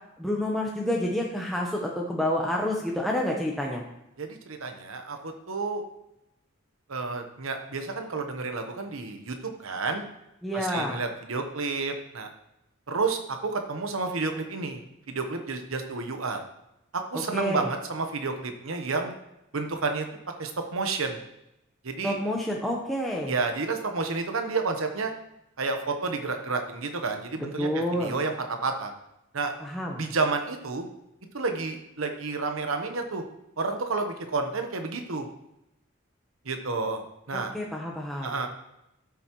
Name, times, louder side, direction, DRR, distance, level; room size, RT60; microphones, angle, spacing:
voice 1, 0.2-3.8 10.4-11.0 17.1-17.7 22.0-23.3 27.6-28.2 29.6-30.0 37.3-38.3, equal, ahead, -2 dB, 0.9 m, -29 dB
voice 2, 4.2-5.8 6.9-10.0 10.5-12.3 12.9-16.4 16.9-19.1 19.5-20.1 20.4-21.2 21.8-22.2 23.3-25.1 25.6-28.9 29.3-29.5 30.0-30.9 31.3-33.2 33.6-35.3 36.4-37.5 38.2-38.5, right 4 dB, 75° right, 5 dB, 1.0 m, -30 dB
12.5 x 7.0 x 3.0 m, 0.87 s
head